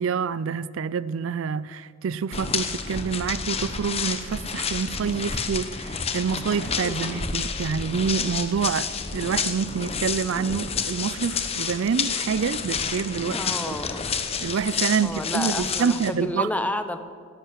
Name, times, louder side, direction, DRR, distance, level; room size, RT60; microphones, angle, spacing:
voice 1, 0.0-13.5 14.4-16.5, right 6 dB, 70° right, 0.4 m, -27 dB
sound 1, 2.3-16.1, left 6 dB, 30° left, 0.9 m, -30 dB
voice 2, 6.8-7.2 13.3-14.0 15.0-17.0, left 1 dB, 5° left, 0.6 m, -30 dB
13.0 x 11.5 x 7.8 m
head